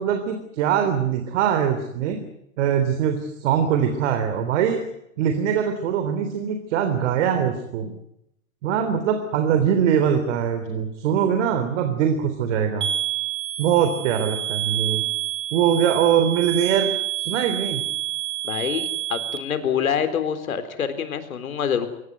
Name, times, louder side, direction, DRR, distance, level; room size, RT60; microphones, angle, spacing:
voice 1, 0.0-2.2 2.6-4.9 5.2-7.9 8.6-12.9 13.6-15.0 15.5-16.9 17.2-17.8, right 8 dB, 60° right, 7 dB, 3.6 m, -22 dB
sound 1, 12.8-19.4, right 12 dB, 30° right, 3.0 m, -28 dB
voice 2, 18.4-21.9, left 8 dB, 85° left, 10 dB, 4.0 m, -26 dB
23.5 x 19.0 x 9.5 m, 0.80 s
hypercardioid pair, 130°, 41 cm